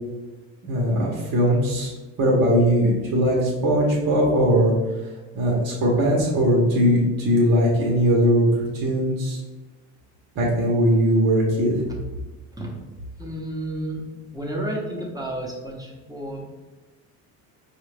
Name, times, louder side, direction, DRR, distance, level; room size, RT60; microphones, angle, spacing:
voice 1, 0.6-1.9 2.2-4.7 5.3-9.4 10.3-11.8, equal, 60° right, -4 dB, 1.2 m, -20 dB
voice 2, 13.2-14.1 14.3-16.5, right 1 dB, 10° right, -2 dB, 1.1 m, -31 dB
4.7 x 2.5 x 3.3 m, 1.2 s
supercardioid pair, 75°, 40 cm